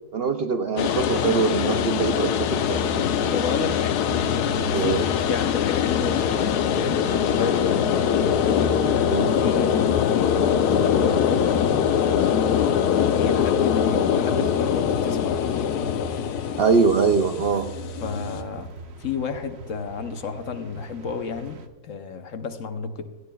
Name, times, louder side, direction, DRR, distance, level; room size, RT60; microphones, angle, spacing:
voice 1, 0.1-3.1 4.7-5.0 9.1-9.3 16.6-17.7, right 5 dB, 70° right, 7 dB, 0.5 m, -23 dB
sound 1, 0.8-18.4, left 8 dB, 90° left, 1.2 m, -23 dB
sound 2, 2.6-21.7, right 3 dB, 50° right, 1.0 m, -38 dB
voice 2, 3.3-4.0 4.3-6.3 6.7-8.1 8.9-11.6 12.0-12.5 13.0-15.9 18.0-18.7 19.0-23.0, left 5 dB, 60° left, 8 dB, 1.0 m, -32 dB
17.5 x 11.0 x 2.3 m, 1.3 s
omnidirectional pair, 1.6 m